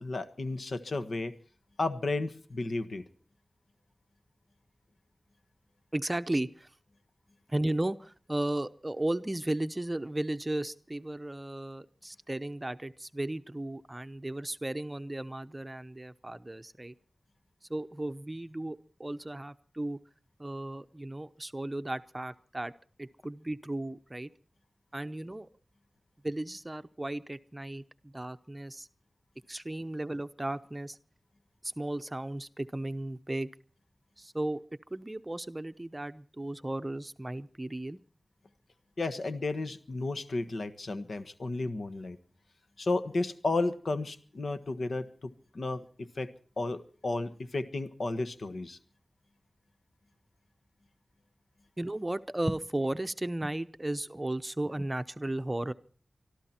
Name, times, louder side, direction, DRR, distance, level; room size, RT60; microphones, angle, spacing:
voice 1, 0.0-1.3 1.8-3.1 39.0-42.2 42.8-48.8, left 2 dB, 65° left, 10 dB, 1.4 m, -33 dB
voice 2, 5.9-6.7 7.5-16.9 17.7-20.0 20.4-22.7 23.0-24.3 24.9-25.5 26.2-28.9 29.5-31.0 31.6-33.5 34.2-34.6 34.9-38.0 51.8-55.7, right 1 dB, 20° right, 11 dB, 0.8 m, -35 dB
24.5 x 13.5 x 4.4 m, 0.42 s
wide cardioid pair, 75°, 0 cm